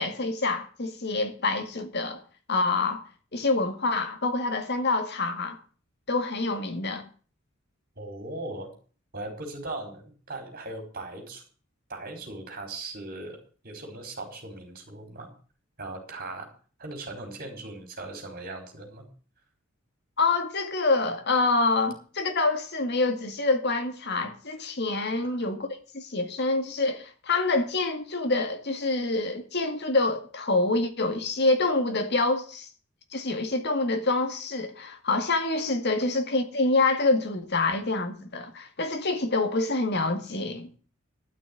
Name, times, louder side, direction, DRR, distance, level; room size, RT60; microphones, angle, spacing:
voice 1, 0.0-2.2 2.5-3.1 3.3-5.6 6.1-7.0 20.2-25.7 25.9-32.7 33.1-40.7, left 3 dB, 55° left, 2.0 m, -26 dB
voice 2, 8.0-8.7 9.1-11.4 11.9-13.4 13.6-15.3 15.8-16.5 16.8-19.1, right 2 dB, 45° right, 4.4 m, -38 dB
12.0 x 6.5 x 8.9 m
head